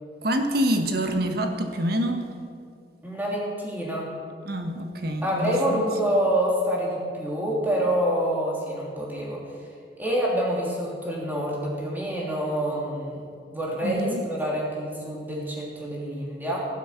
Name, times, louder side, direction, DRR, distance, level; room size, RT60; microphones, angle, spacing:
voice 1, 0.2-2.3 4.5-5.9 13.8-14.2, equal, 60° right, 5 dB, 1.4 m, -26 dB
voice 2, 3.0-4.1 5.2-9.4 10.0-16.6, equal, 10° right, -4 dB, 3.1 m, -27 dB
15.0 x 11.5 x 5.9 m, 2.2 s
head